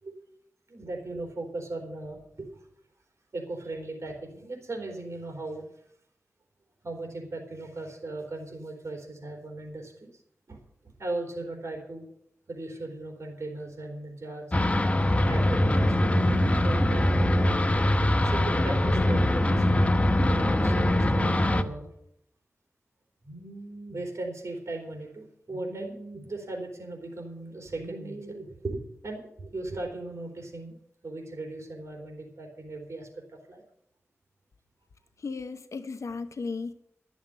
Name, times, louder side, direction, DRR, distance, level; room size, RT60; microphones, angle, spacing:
voice 1, 0.7-2.6 3.3-5.6 6.8-10.1 10.5-10.6 11.0-12.1 12.5-14.5 15.3-17.3 18.2-21.9 23.2-30.8 31.0-33.6, right 2 dB, 65° right, 2 dB, 3.7 m, -37 dB
sound 1, 14.5-21.6, left 1 dB, 25° left, 0.9 m, -23 dB
voice 2, 35.2-36.7, left 4 dB, 80° left, 11 dB, 0.8 m, -35 dB
12.5 x 7.3 x 9.4 m, 0.72 s
wide cardioid pair, 65°, 5 cm